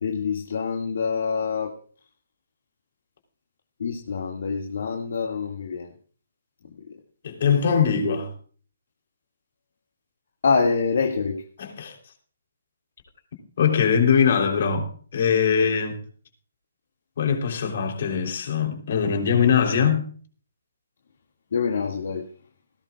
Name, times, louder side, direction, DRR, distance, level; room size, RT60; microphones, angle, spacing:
voice 1, 0.0-1.7 3.8-5.9 10.4-11.4 21.5-22.2, left 5 dB, 60° left, 2.1 m, -25 dB
voice 2, 7.2-8.3 11.6-11.9 13.6-16.0 17.2-20.0, left 7 dB, 45° left, 3.6 m, -22 dB
19.0 x 17.0 x 2.4 m
hypercardioid pair, 175°, 0 cm